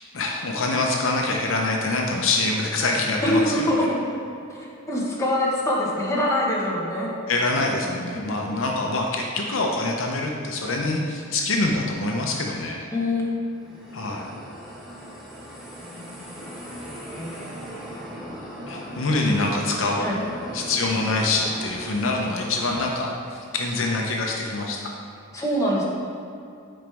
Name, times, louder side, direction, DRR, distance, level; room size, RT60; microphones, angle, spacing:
voice 1, 0.1-3.7 7.3-12.9 13.9-14.3 18.7-20.1 20.5-24.9, left 2 dB, 70° left, 0 dB, 0.7 m, -25 dB
voice 2, 3.2-4.0 4.5-7.1 8.1-8.2 12.9-13.3 13.7-13.8 17.2-17.3 20.0-20.2 25.3-25.8, left 1 dB, 15° left, -5 dB, 1.3 m, -24 dB
sound 1, 13.4-23.2, equal, ahead, 1.2 m, -38 dB
8.9 x 5.2 x 3.5 m, 2.5 s
head